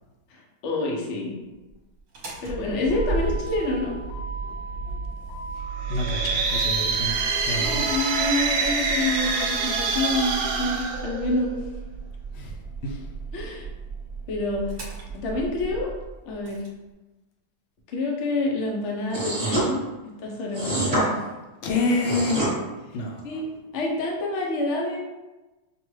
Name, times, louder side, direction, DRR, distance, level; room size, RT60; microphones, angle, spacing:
voice 1, 0.3-1.3 2.4-4.0 7.6-11.5 13.3-13.7 14.3-14.7 15.1-16.0 16.2-16.6 17.9-21.3 23.2-23.5 23.7-25.0, left 2 dB, 60° left, -1 dB, 0.7 m, -28 dB
Motor vehicle (road), 2.0-16.7, right 4 dB, 55° right, 1.3 m, -34 dB
sound 1, 5.8-11.7, right 4 dB, 75° right, 0.9 m, -26 dB
voice 2, 5.9-7.8 12.3-12.6 12.8-13.1 21.6-22.5 22.9-23.4, left 2 dB, 80° left, 1 dB, 1.5 m, -28 dB
sound 2, 19.1-19.7 20.5-21.0 21.9-22.5, right 1 dB, 25° right, 1.2 m, -25 dB
5.9 x 2.4 x 3.1 m, 1.1 s
omnidirectional pair, 2.1 m